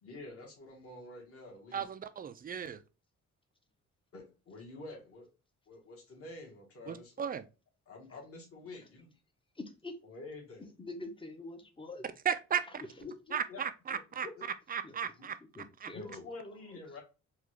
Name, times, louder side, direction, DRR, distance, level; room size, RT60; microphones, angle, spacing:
voice 1, 0.0-1.9 4.1-5.3 5.7-7.2 7.9-9.1 10.0-10.7 13.0-13.6 13.9-14.5 15.2-15.3 15.9-17.0, left 2 dB, 50° left, 1.4 m, -48 dB
voice 2, 1.7-2.8 6.9-7.4 12.2-12.8 13.3-14.3 14.7-15.3 15.8-15.9, right 8 dB, 30° right, 0.4 m, -35 dB
voice 3, 9.6-9.9 10.8-12.0 14.8-14.9 15.6-16.2, left 2 dB, 15° left, 0.7 m, -44 dB
3.6 x 2.4 x 3.0 m
cardioid pair, 110°, 30 cm